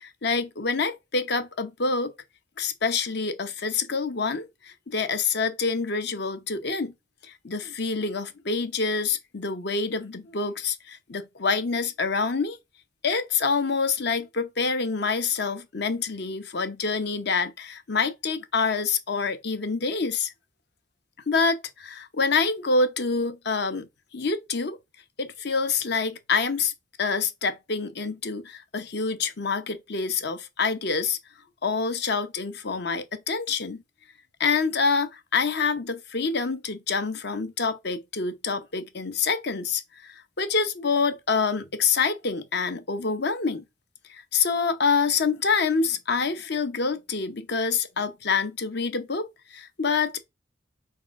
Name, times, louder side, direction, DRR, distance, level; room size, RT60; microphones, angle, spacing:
voice 1, 0.0-2.1 2.6-4.5 4.9-6.9 7.2-12.6 13.0-20.3 21.3-23.9 24.1-24.8 25.2-26.7 27.0-31.2 31.6-33.8 34.4-43.6 44.1-50.2, left 4 dB, 55° left, 0.9 m, -26 dB
4.7 x 4.4 x 5.9 m
head